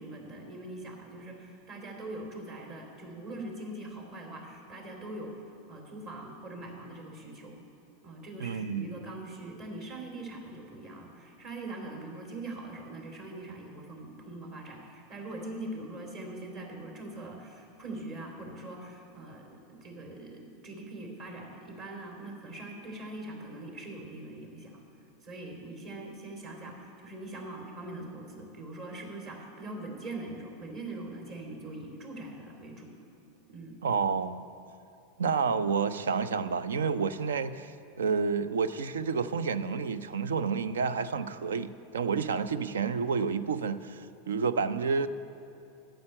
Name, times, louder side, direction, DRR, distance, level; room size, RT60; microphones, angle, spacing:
voice 1, 0.0-5.4 5.7-7.6 8.0-24.8 25.2-32.9 33.5-33.8, right 2 dB, 40° right, 1 dB, 2.7 m, -42 dB
voice 2, 8.4-8.9 33.8-34.4 35.2-45.1, right 5 dB, 70° right, 15 dB, 0.4 m, -30 dB
9.4 x 7.7 x 8.6 m, 2.6 s
figure-of-eight pair, 85°, 0 cm